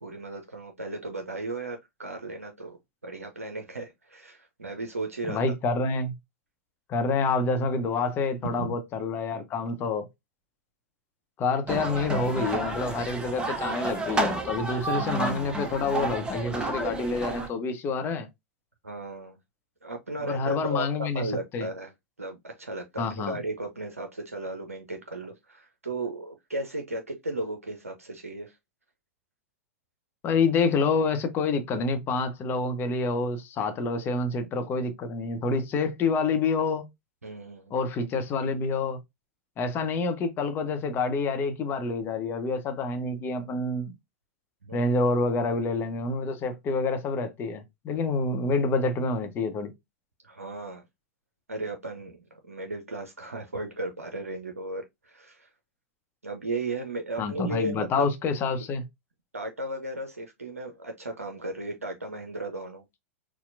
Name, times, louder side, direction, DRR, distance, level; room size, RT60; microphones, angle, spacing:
voice 1, 0.0-2.8 3.0-5.4 8.6-8.7 18.8-19.4 19.8-21.9 22.2-28.5 37.2-37.7 44.6-44.9 50.2-50.8 51.5-52.2 52.5-55.5 56.2-58.1 59.3-62.8, right 2 dB, 85° right, 0.6 m, -35 dB
voice 2, 5.2-6.1 6.9-10.1 11.4-18.3 20.2-21.2 21.5-21.7 23.0-23.4 30.2-36.8 37.7-39.0 39.6-43.9 44.7-49.7 57.2-58.8, left 3 dB, 30° left, 0.8 m, -27 dB
sound 1, 11.7-17.5, right 2 dB, 10° right, 0.6 m, -31 dB
4.2 x 2.3 x 2.4 m
figure-of-eight pair, 95°, 8 cm